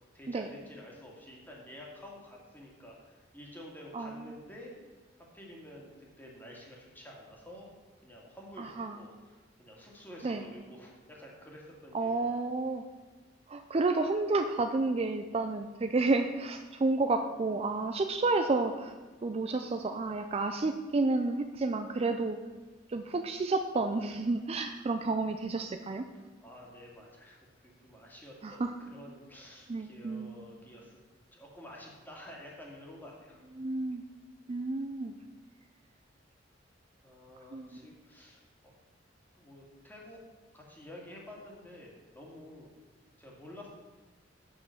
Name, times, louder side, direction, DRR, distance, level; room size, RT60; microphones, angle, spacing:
voice 1, 0.1-4.7 5.2-7.7 8.0-12.4 26.4-31.0 31.3-33.4 37.0-38.4 39.3-40.2 40.5-42.7 43.2-43.7, left 1 dB, 10° left, -2 dB, 2.1 m, -50 dB
voice 2, 3.9-4.3 8.6-9.0 10.2-10.4 11.9-12.8 13.5-18.9 19.2-22.4 22.9-26.0 28.4-28.7 29.7-30.4 33.6-34.0 34.5-35.1 37.5-37.7, right 3 dB, 35° right, 7 dB, 0.4 m, -30 dB
7.8 x 6.3 x 7.0 m, 1.3 s
head